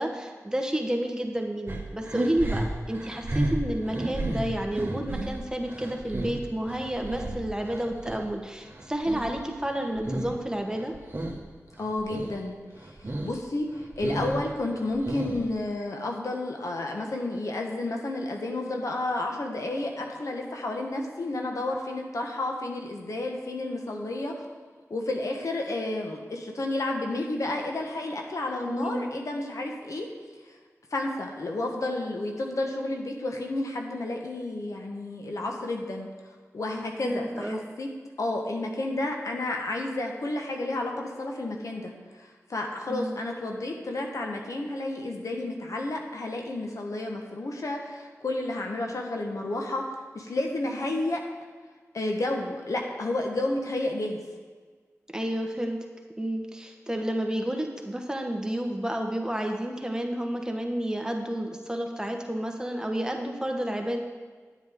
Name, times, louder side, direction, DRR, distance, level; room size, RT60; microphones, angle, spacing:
voice 1, 0.0-10.9 28.6-29.1 37.0-37.6 42.9-43.2 55.1-55.8 56.2-64.0, right 1 dB, 10° right, 2 dB, 1.3 m, -30 dB
sound 1, 1.7-8.3 8.6-10.4 10.7-11.4 11.7-12.4 12.7-13.4 13.7-15.6, right 1 dB, 40° right, 1.6 m, -33 dB
voice 2, 11.8-24.3 24.9-30.1 30.9-36.1 36.5-37.9 38.2-51.2 51.9-54.2, left 2 dB, 70° left, 1 dB, 1.3 m, -31 dB
9.8 x 9.2 x 3.7 m, 1.5 s
cardioid pair, 45°, 6 cm